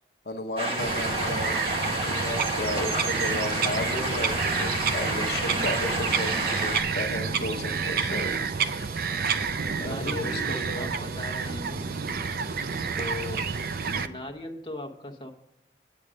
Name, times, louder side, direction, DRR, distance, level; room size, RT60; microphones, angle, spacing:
voice 1, 0.3-9.0 9.7-10.9, left 1 dB, 65° left, 4 dB, 0.8 m, -34 dB
sound 1, 0.6-6.8, right 1 dB, 30° right, 1.5 m, -30 dB
Bird vocalization bird call bird song, 0.8-14.1, right 5 dB, 55° right, 0.4 m, -29 dB
voice 2, 9.8-11.8 13.0-13.5 14.0-15.3, left 2 dB, 25° left, 2 dB, 1.0 m, -38 dB
8.6 x 8.6 x 5.1 m, 0.82 s
head